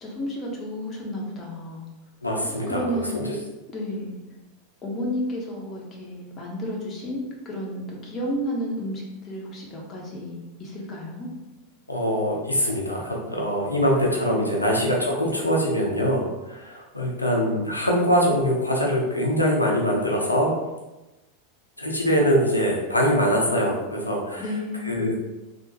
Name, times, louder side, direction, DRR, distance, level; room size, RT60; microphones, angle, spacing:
voice 1, 0.0-1.9 2.7-3.3 3.7-4.1 4.8-11.3 24.4-25.0, equal, 25° left, -2 dB, 0.8 m, -32 dB
voice 2, 2.2-3.4 11.9-20.5 21.8-24.5 24.8-25.1, equal, 85° left, -1 dB, 0.6 m, -23 dB
3.5 x 2.5 x 2.8 m, 1.0 s
figure-of-eight pair, 85°, 0 cm